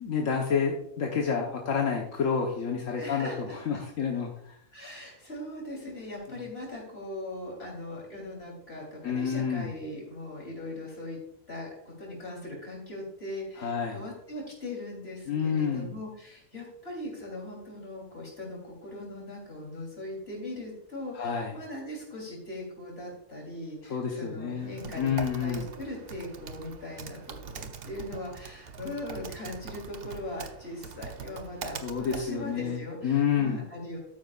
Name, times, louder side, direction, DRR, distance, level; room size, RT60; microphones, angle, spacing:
voice 1, 0.0-4.5 9.0-9.7 13.6-14.0 15.3-15.9 21.1-21.5 23.9-25.7 31.8-33.6, left 6 dB, 85° left, 0 dB, 1.5 m, -29 dB
voice 2, 3.0-3.6 4.7-11.2 11.5-34.0, left 1 dB, 50° left, -2 dB, 3.7 m, -40 dB
Typing, 24.6-32.8, right 6 dB, 55° right, 0.9 m, -42 dB
13.0 x 9.3 x 2.4 m, 0.70 s
omnidirectional pair, 1.3 m